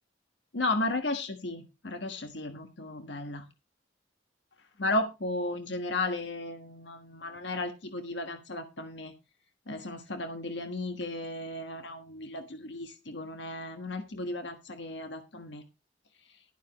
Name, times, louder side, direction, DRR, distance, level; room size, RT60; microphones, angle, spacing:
voice 1, 0.5-3.5 4.8-9.1 9.7-15.6, left 2 dB, 75° left, 6 dB, 1.4 m, -34 dB
12.5 x 11.5 x 3.0 m, 0.26 s
head